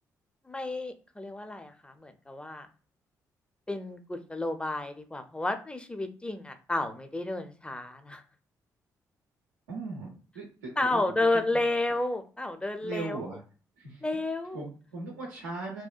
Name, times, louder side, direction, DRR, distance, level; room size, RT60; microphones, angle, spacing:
voice 1, 0.4-2.7 3.7-8.2 10.8-13.3 14.0-14.7, left 2 dB, 10° left, 7 dB, 0.5 m, -31 dB
voice 2, 9.7-11.0 12.8-13.4 13.8-14.0 14.5-15.9, right 3 dB, 85° right, -3 dB, 0.5 m, -38 dB
2.7 x 2.1 x 2.3 m, 0.38 s
hypercardioid pair, 40°, 9 cm